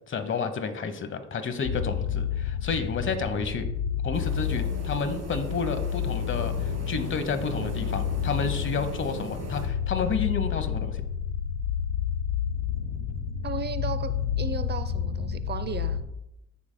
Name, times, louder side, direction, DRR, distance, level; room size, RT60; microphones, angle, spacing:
voice 1, 0.1-3.6 4.0-11.0, left 5 dB, 40° left, 8 dB, 1.0 m, -30 dB
sound 1, 1.6-16.0, left 8 dB, 80° left, 0.9 m, -30 dB
sound 2, 4.1-9.7, right 4 dB, 60° right, 2.6 m, -39 dB
voice 2, 13.4-16.0, right 5 dB, 35° right, 11 dB, 0.6 m, -35 dB
14.0 x 5.1 x 2.2 m, 0.86 s
cardioid pair, 90°, 30 cm